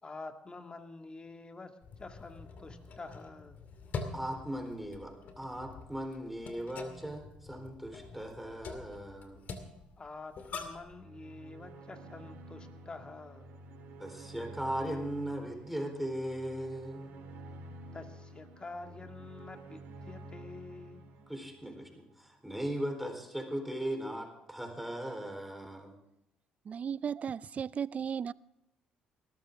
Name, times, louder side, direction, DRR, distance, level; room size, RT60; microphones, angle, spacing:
voice 1, 0.0-3.6 10.0-13.5 17.9-21.0, left 3 dB, 30° left, 2.2 m, -47 dB
sound 1, 1.8-10.9, left 4 dB, 55° left, 2.4 m, -45 dB
voice 2, 4.1-9.4 14.0-17.1 21.3-25.9, right 1 dB, 5° right, 4.1 m, -38 dB
sound 2, 10.8-22.2, right 1 dB, 70° right, 3.1 m, -50 dB
voice 3, 26.6-28.3, right 7 dB, 45° right, 0.4 m, -35 dB
19.0 x 13.5 x 3.7 m
hypercardioid pair, 60°, 3 cm